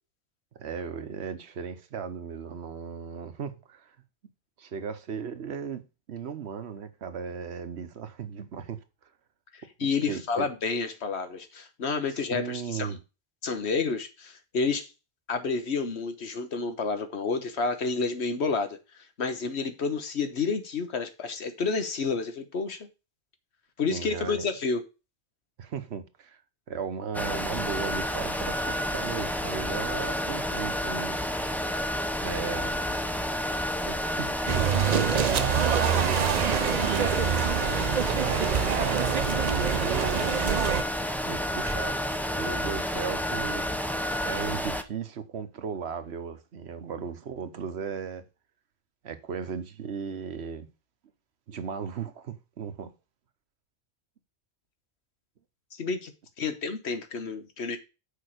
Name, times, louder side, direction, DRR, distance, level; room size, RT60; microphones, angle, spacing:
voice 1, 0.5-4.0 4.6-5.8 6.1-8.8 10.1-10.5 12.3-13.0 23.9-24.5 25.6-26.4 26.7-31.2 32.2-32.8 33.8-37.4 38.3-38.5 38.8-39.2 39.5-40.4 41.2-42.1 42.4-43.7 44.2-48.3 49.0-50.7 51.5-52.9, right 6 dB, 75° right, 1.2 m, -36 dB
voice 2, 9.5-13.0 13.4-14.9 15.3-22.9 23.8-24.8 55.7-56.1 56.4-57.8, left 4 dB, 80° left, 1.4 m, -30 dB
sound 1, 27.1-44.8, equal, ahead, 0.5 m, -30 dB
sound 2, 34.5-40.8, right 8 dB, 50° right, 0.6 m, -26 dB
6.7 x 5.0 x 6.5 m
omnidirectional pair, 1.1 m